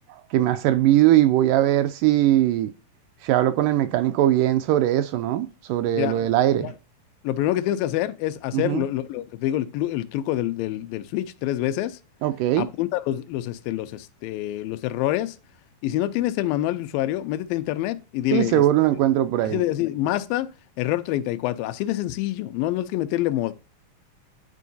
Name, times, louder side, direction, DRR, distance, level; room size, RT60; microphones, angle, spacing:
voice 1, 0.3-2.7 3.2-6.7 8.5-8.9 12.2-12.7 18.3-19.6, right 13 dB, 80° right, 2.0 m, -20 dB
voice 2, 6.0-6.3 6.6-6.7 7.2-12.0 12.6-15.4 15.8-18.6 19.4-20.5 20.8-23.5, left 14 dB, 85° left, 2.3 m, -26 dB
9.9 x 4.6 x 2.6 m
omnidirectional pair, 4.0 m